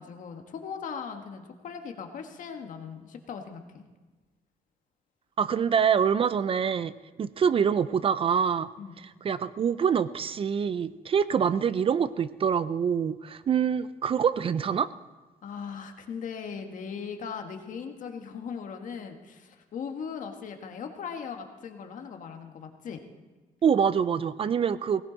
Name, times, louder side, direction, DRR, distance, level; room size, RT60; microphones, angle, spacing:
voice 1, 0.0-3.8 8.8-8.9 15.4-23.0, left 6 dB, 60° left, 5 dB, 1.5 m, -39 dB
voice 2, 5.4-6.9 7.2-8.7 9.2-14.9 23.6-25.0, right 7 dB, 35° right, 15 dB, 0.4 m, -25 dB
18.0 x 16.5 x 4.0 m, 1.2 s
cardioid pair, 130°, 15 cm